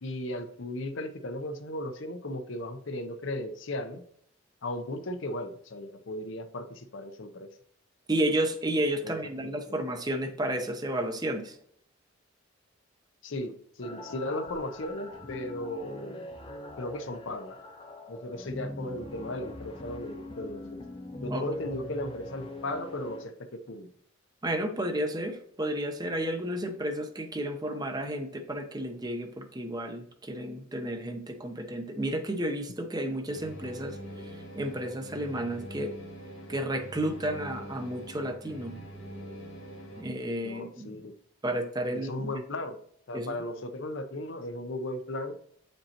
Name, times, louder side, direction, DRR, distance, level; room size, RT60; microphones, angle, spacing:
voice 1, 0.0-4.0 4.6-7.5 9.0-9.8 13.2-16.2 16.8-17.6 18.1-20.8 21.2-23.9 40.4-41.1 41.9-42.8 43.1-45.4, left 1 dB, 60° left, 8 dB, 0.7 m, -36 dB
voice 2, 8.1-11.6 21.3-21.4 24.4-34.0 34.2-35.9 36.5-38.8 40.0-40.9 41.4-42.3 43.1-43.3, right 1 dB, 20° right, 6 dB, 0.7 m, -32 dB
sound 1, 13.8-23.2, left 1 dB, 25° left, 0.7 m, -42 dB
sound 2, 33.3-40.0, right 1 dB, 80° left, 2.1 m, -44 dB
8.3 x 5.2 x 2.9 m, 0.65 s
head